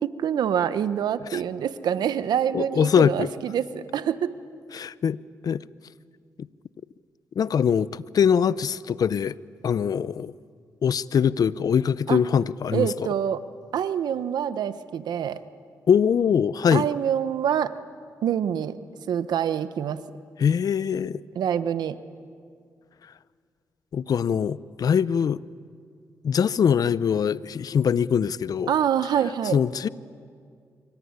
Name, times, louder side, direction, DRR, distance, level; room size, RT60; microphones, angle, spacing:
voice 1, 0.0-4.3 12.1-12.2 12.7-13.4 13.7-15.4 16.7-17.7 18.2-18.8 19.1-20.0 21.4-22.0 28.7-29.6, right 9 dB, 85° right, 1.0 m, -26 dB
voice 2, 2.5-3.3 4.7-5.2 5.4-5.6 7.4-9.3 9.6-10.3 10.8-13.1 15.9-16.9 20.4-21.2 23.9-25.4 26.2-28.7 29.5-29.9, left 7 dB, 65° left, 0.7 m, -22 dB
25.0 x 24.0 x 9.7 m
cardioid pair, 65°, 7 cm